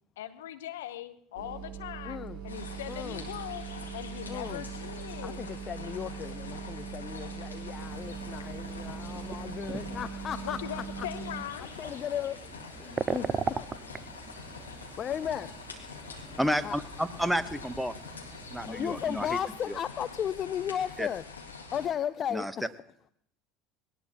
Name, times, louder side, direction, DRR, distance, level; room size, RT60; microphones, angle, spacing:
voice 1, 0.2-3.6 3.9-5.4 10.4-11.7, left 12 dB, 75° left, 10 dB, 0.9 m, -40 dB
sound 1, 1.4-11.4, right 7 dB, 55° right, 2.6 m, -41 dB
voice 2, 2.1-2.4 2.9-3.3 4.3-4.7 5.2-10.8 11.6-12.5 12.8-13.9 14.3-14.4 15.0-15.5 16.6-16.8 18.7-21.2 21.7-22.7, left 9 dB, 40° left, 14 dB, 0.5 m, -35 dB
sound 2, 2.5-21.9, left 4 dB, 90° left, 1.8 m, -45 dB
sound 3, 7.9-19.5, right 5 dB, 25° right, 0.6 m, -40 dB
voice 3, 16.4-17.9 18.5-19.4 19.7-19.8 21.0-21.1 22.3-22.5, equal, 5° right, 13 dB, 1.0 m, -30 dB
20.5 x 18.0 x 2.9 m, 0.68 s
figure-of-eight pair, 70°, 0 cm